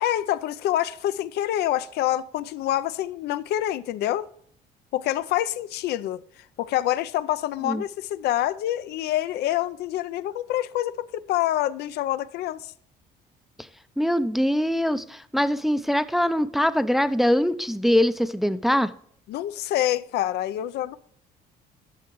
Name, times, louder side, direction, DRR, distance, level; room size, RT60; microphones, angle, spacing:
voice 1, 0.0-4.3 4.9-6.2 6.6-12.7 19.3-21.0, left 13 dB, 75° left, 0.5 m, -26 dB
voice 2, 14.0-18.9, equal, ahead, 0.4 m, -23 dB
11.5 x 6.6 x 3.0 m
cardioid pair, 110°, 17 cm